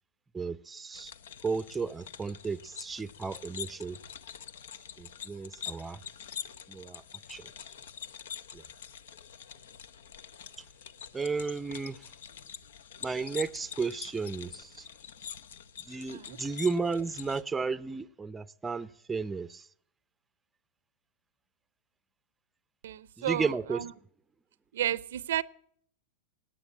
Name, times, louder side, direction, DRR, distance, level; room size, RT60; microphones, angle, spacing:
voice 1, 0.3-1.1 1.4-4.0 5.0-6.0 6.7-7.0 7.3-7.5 8.5-8.6 11.1-12.1 13.0-14.9 15.8-19.7 23.2-23.8, right 4 dB, 15° right, 0.5 m, -33 dB
sound 1, 0.9-17.4, left 8 dB, 70° left, 0.7 m, -45 dB
voice 2, 22.8-23.9 24.7-25.4, right 11 dB, 70° right, 0.5 m, -32 dB
17.5 x 9.0 x 8.7 m
hypercardioid pair, 100°, 0 cm